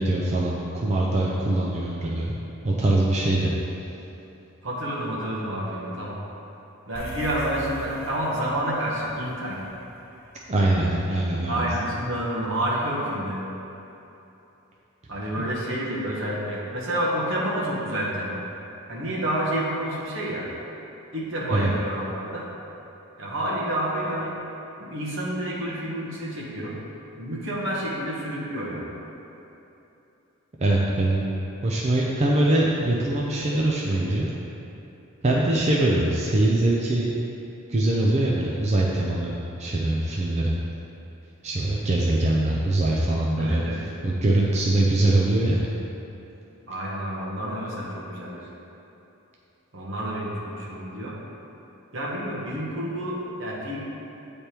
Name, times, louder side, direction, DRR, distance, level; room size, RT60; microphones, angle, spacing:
voice 1, 0.0-2.3 2.6-3.5 10.5-11.6 15.4-15.5 21.5-21.7 30.6-31.2 31.6-34.3 35.2-37.2 37.7-39.3 39.6-40.5 41.4-45.6, right 1 dB, 30° right, -4 dB, 0.5 m, -23 dB
voice 2, 4.6-6.2 6.9-9.6 11.5-13.4 15.1-18.4 18.9-20.5 21.1-22.4 23.2-24.3 24.8-26.7 27.2-28.9 43.4-43.8 46.7-48.5 49.7-51.1 51.9-53.8, right 1 dB, 60° right, -5 dB, 1.3 m, -29 dB
sound 1, 6.9-11.5, left 1 dB, 50° left, 1.2 m, -41 dB
8.6 x 3.4 x 4.4 m, 3.0 s
head